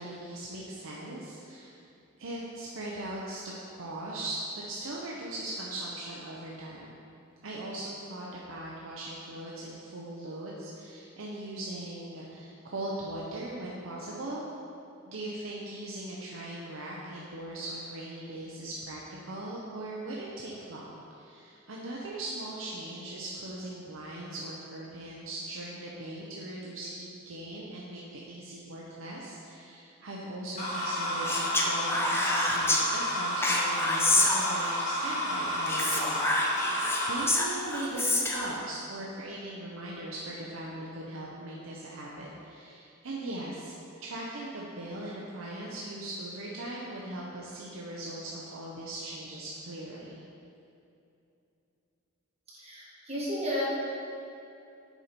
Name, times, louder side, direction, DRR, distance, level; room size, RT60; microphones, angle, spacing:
voice 1, 0.0-1.8 2.2-7.0 7.4-14.4 15.1-20.9 21.2-36.2 36.5-36.8 37.1-43.7 44.0-50.2, right 1 dB, 70° right, -4 dB, 0.8 m, -39 dB
sound 1, 30.6-37.2, equal, 35° left, 1.6 m, -31 dB
Speech, 31.3-32.8 33.4-34.9 35.7-38.5, left 2 dB, 10° left, 0.6 m, -28 dB
voice 2, 52.5-53.6, left 1 dB, 30° right, -7 dB, 1.6 m, -33 dB
7.2 x 5.2 x 4.3 m, 2.7 s
head